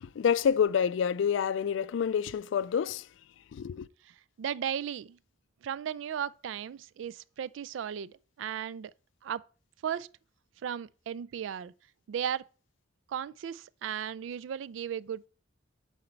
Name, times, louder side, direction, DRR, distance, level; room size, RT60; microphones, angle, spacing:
voice 1, 0.0-3.1 3.5-3.9, left 7 dB, 80° left, 0.3 m, -28 dB
voice 2, 4.0-5.2 5.6-8.9 9.2-9.4 9.8-10.1 10.6-11.7 12.1-12.5 13.1-15.3, right 9 dB, 85° right, 0.3 m, -36 dB
7.8 x 4.3 x 4.4 m
head